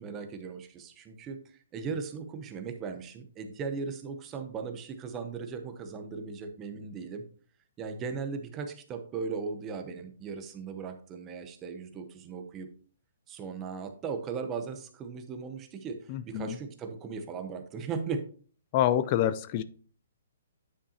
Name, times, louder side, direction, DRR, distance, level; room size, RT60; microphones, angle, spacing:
voice 1, 0.0-7.2 7.8-12.7 13.3-18.2, right 5 dB, 15° right, 0.7 m, -38 dB
voice 2, 16.1-16.6 18.7-19.6, left 11 dB, 25° left, 0.3 m, -27 dB
9.5 x 5.7 x 2.8 m
hypercardioid pair, 175°, 0 cm